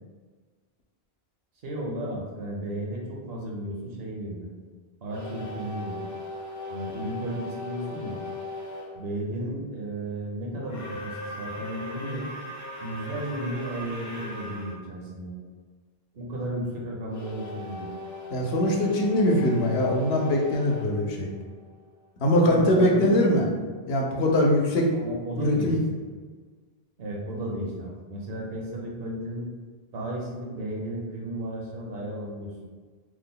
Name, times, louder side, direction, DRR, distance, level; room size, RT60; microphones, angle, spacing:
voice 1, 1.6-4.5 5.0-6.1 6.7-8.2 8.9-12.3 12.8-15.4 16.1-17.9 22.4-23.3 24.9-25.9 27.0-29.5 29.9-32.5, right 1 dB, 70° right, -2 dB, 0.9 m, -34 dB
sound 1, 5.1-8.9 10.6-14.8 17.1-21.9, left 2 dB, 25° left, 0.4 m, -39 dB
voice 2, 18.3-21.3 22.2-23.4 23.9-24.9 25.4-25.8, left 1 dB, 80° left, 0 dB, 0.9 m, -22 dB
3.0 x 2.1 x 3.7 m, 1.5 s
omnidirectional pair, 1.0 m